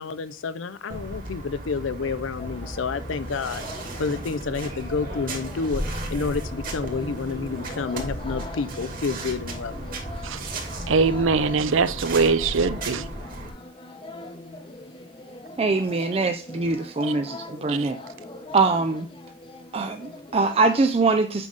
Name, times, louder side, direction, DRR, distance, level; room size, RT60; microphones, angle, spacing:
voice 1, 0.0-10.0, left 4 dB, 70° left, 0.5 m, -30 dB
sound 1, 0.9-13.5, right 1 dB, 45° right, 2.1 m, -35 dB
sound 2, 2.4-20.8, left 2 dB, 25° left, 0.8 m, -41 dB
voice 2, 10.9-13.1 17.7-17.9, right 4 dB, 75° right, 0.6 m, -22 dB
voice 3, 15.6-18.0 18.5-19.1 19.7-21.5, right 3 dB, 30° right, 0.4 m, -23 dB
8.2 x 5.2 x 3.9 m
head